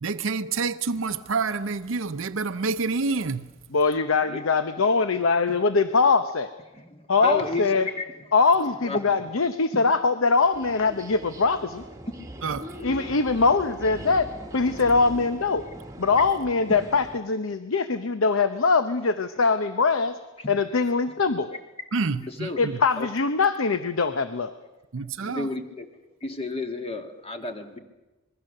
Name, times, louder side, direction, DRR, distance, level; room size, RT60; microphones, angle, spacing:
voice 1, 0.0-3.5 12.4-12.7 21.9-22.8 24.9-25.5, right 4 dB, 70° right, 0.7 m, -28 dB
voice 2, 3.7-6.5 7.1-7.9 8.3-11.8 12.8-14.3 14.5-15.6 16.0-20.2 20.5-21.6 22.6-24.5, left 4 dB, 80° left, 0.8 m, -22 dB
voice 3, 6.8-7.6 8.0-8.1 8.8-9.0 12.7-13.1 22.1-22.6 23.0-23.1 25.2-25.8 26.2-27.8, left 2 dB, 30° left, 1.7 m, -32 dB
sound 1, 10.5-17.2, equal, 15° right, 1.4 m, -41 dB
25.5 x 21.0 x 6.6 m
head